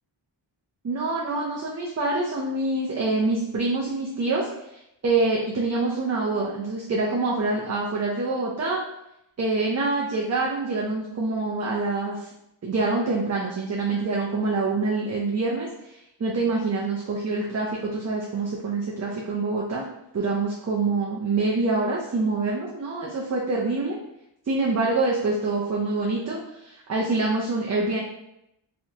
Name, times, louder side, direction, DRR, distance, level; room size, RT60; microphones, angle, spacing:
voice 1, 0.8-8.8 9.4-12.3 12.6-19.8 20.1-24.0 24.5-28.0, right 3 dB, 35° right, -4 dB, 0.5 m, -26 dB
3.2 x 2.8 x 2.8 m, 0.83 s
wide cardioid pair, 145°, 48 cm